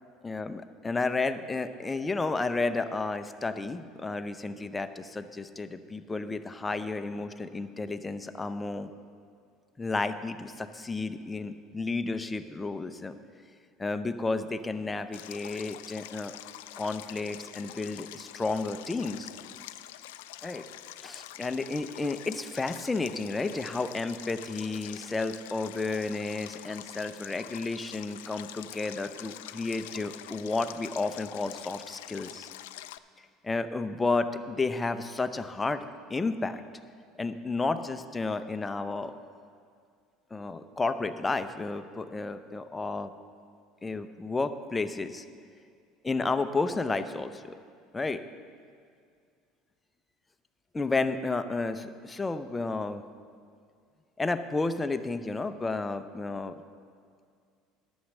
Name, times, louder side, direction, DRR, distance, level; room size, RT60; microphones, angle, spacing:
voice 1, 0.2-8.9 9.8-13.1 13.8-16.3 16.8-19.3 20.4-20.6 21.0-32.5 33.4-36.6 37.2-39.1 40.3-43.1 43.8-45.2 46.0-47.4 47.9-48.2 50.7-53.0 54.2-56.5, left 3 dB, 20° left, 9 dB, 0.7 m, -32 dB
Stream, 15.1-33.0, left 14 dB, 85° left, 0.3 m, -45 dB
11.5 x 7.2 x 6.6 m, 2.2 s
supercardioid pair, 85°, 0 cm